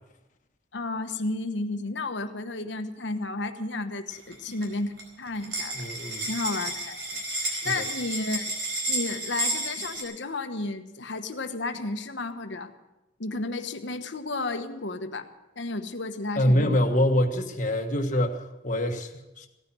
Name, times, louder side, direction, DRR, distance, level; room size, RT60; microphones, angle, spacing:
voice 1, 0.7-5.8 6.3-8.5 8.9-12.7 13.2-15.3 15.6-16.8, left 2 dB, 70° left, 8 dB, 1.2 m, -32 dB
sound 1, 4.1-4.6 5.0-5.1 5.3-10.0, right 1 dB, 65° right, 4.5 m, -31 dB
voice 2, 5.7-6.3 7.5-7.8 16.4-19.5, left 1 dB, 40° left, 3 dB, 1.4 m, -25 dB
17.0 x 10.0 x 7.5 m, 0.99 s
head